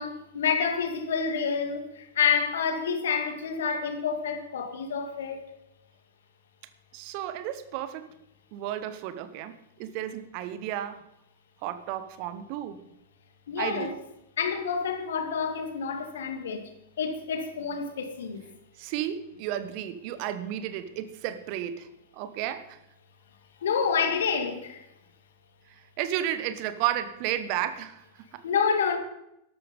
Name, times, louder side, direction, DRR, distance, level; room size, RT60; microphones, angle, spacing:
voice 1, 0.0-5.5 13.5-13.9 14.4-16.7 17.0-18.4 23.6-24.8 28.4-29.0, left 6 dB, 60° left, 2.1 m, -28 dB
voice 2, 6.9-8.1 8.5-11.0 11.6-12.8 13.6-14.0 18.8-21.9 22.1-22.8 25.7-28.4, right 11 dB, 45° right, 1.1 m, -33 dB
13.0 x 13.0 x 5.3 m
figure-of-eight pair, 90°, 0 cm